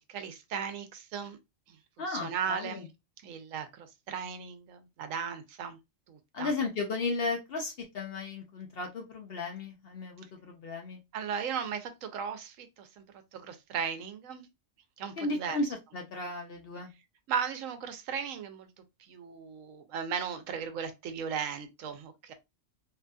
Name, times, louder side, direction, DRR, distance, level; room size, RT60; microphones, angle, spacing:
voice 1, 0.1-1.4 2.1-2.8 3.2-5.8 6.1-6.5 11.1-12.9 13.3-14.5 15.0-15.6 17.3-18.7 19.1-22.3, right 7 dB, 80° right, 1.0 m, -36 dB
voice 2, 2.0-2.9 6.3-11.0 15.2-16.9, left 3 dB, 60° left, 0.7 m, -35 dB
2.7 x 2.5 x 2.2 m
omnidirectional pair, 1.4 m